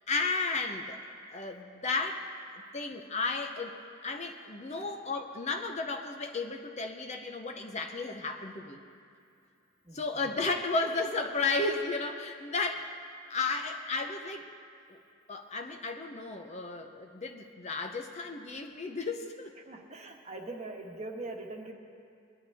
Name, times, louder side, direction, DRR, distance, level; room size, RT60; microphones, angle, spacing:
voice 1, 0.1-1.0 1.3-2.3 2.7-3.8 4.0-8.8 9.9-12.9 13.3-14.5 14.9-15.0 15.3-19.5, left 3 dB, 30° left, 4 dB, 0.7 m, -33 dB
voice 2, 19.6-21.7, right 2 dB, 30° right, 1 dB, 1.3 m, -42 dB
22.0 x 11.0 x 3.5 m, 2.4 s
head